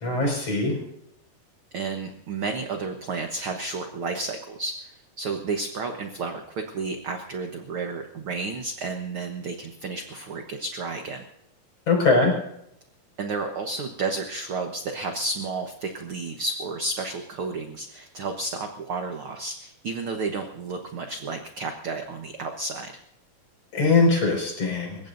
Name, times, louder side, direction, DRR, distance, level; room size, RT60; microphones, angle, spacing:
voice 1, 0.0-0.8 11.9-12.3 23.7-25.0, left 3 dB, 45° left, 1 dB, 6.5 m, -21 dB
voice 2, 1.7-11.2 13.2-22.9, right 3 dB, 65° right, 4 dB, 1.4 m, -32 dB
29.5 x 16.5 x 2.7 m, 0.77 s
omnidirectional pair, 4.1 m